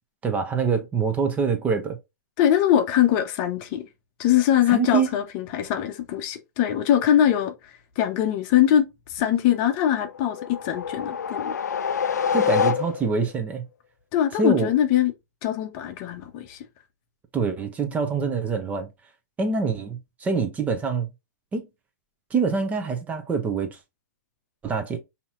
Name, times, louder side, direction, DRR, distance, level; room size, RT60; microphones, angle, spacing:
voice 1, 0.2-2.0 4.7-5.1 12.3-13.6 14.3-14.7 17.3-18.9 19.4-21.1 21.5-21.7 22.3-23.8 24.6-25.0, right 5 dB, 15° right, 0.8 m, -25 dB
voice 2, 2.4-3.8 4.2-7.5 8.0-8.8 9.1-11.5 14.1-15.1 15.4-16.6, left 11 dB, 35° left, 0.7 m, -22 dB
sound 1, 10.0-13.3, left 7 dB, 70° left, 0.4 m, -26 dB
5.5 x 2.8 x 2.5 m
figure-of-eight pair, 110°, 10 cm